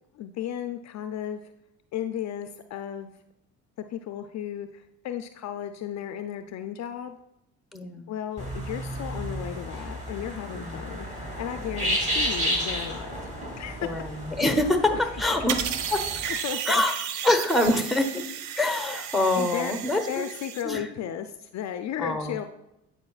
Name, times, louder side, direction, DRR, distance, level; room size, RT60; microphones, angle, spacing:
voice 1, 0.2-1.4 1.9-3.1 3.9-7.2 8.1-13.1 13.6-13.8 14.9-15.0 15.6-15.7 16.3-16.8 19.4-19.7 20.1-22.4, left 10 dB, 50° left, 9 dB, 0.5 m, -34 dB
voice 2, 7.7-8.2 10.5-10.8 13.8-16.1 16.7-17.0 17.2-18.2 18.6-20.3 20.6-20.9 22.0-22.4, left 2 dB, ahead, 6 dB, 1.0 m, -25 dB
sound 1, 8.4-16.3, equal, 20° right, 2.5 m, -32 dB
sound 2, 15.5-20.6, right 9 dB, 75° right, 0.7 m, -33 dB
9.5 x 4.9 x 2.4 m, 0.85 s
hypercardioid pair, 60°, 35 cm